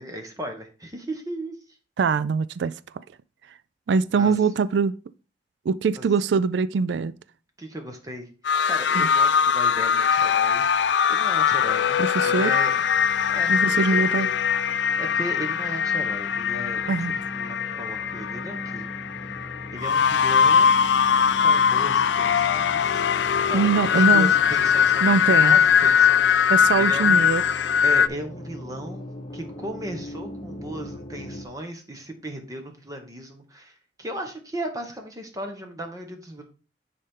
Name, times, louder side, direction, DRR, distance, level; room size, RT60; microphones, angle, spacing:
voice 1, 0.0-1.6 4.1-4.5 6.0-6.1 7.6-8.3 8.6-10.7 11.1-12.7 13.3-14.4 15.0-18.9 19.7-20.8 21.4-27.3 27.8-36.4, right 1 dB, 20° right, 1.2 m, -36 dB
voice 2, 2.0-2.7 3.9-4.9 5.7-7.1 8.9-9.1 12.0-12.5 13.5-14.3 16.9-17.2 23.5-24.3 25.0-25.6 26.5-27.4, right 5 dB, 80° right, 0.4 m, -22 dB
sound 1, 8.5-28.1, left 7 dB, 85° left, 0.4 m, -21 dB
sound 2, 12.7-31.5, equal, 25° left, 1.1 m, -40 dB
9.8 x 4.2 x 3.7 m
head